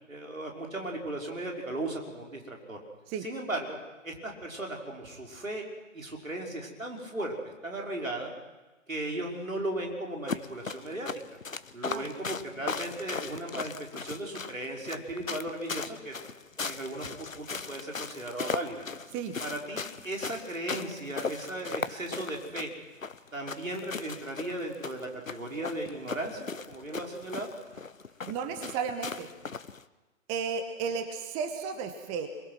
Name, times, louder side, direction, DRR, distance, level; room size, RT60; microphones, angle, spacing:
voice 1, 0.1-2.8 3.2-3.8 4.0-5.7 5.9-8.3 8.9-11.4 11.7-16.1 16.6-17.1 17.3-18.9 19.4-22.7 23.3-27.5, right 1 dB, 80° right, 0 dB, 5.4 m, -36 dB
sound 1, 10.3-29.8, left 5 dB, 80° left, 1.0 m, -38 dB
voice 2, 28.3-29.3 30.3-32.3, right 6 dB, 15° right, 7 dB, 1.2 m, -33 dB
27.0 x 22.0 x 6.2 m, 1.2 s
figure-of-eight pair, 130°, 40 cm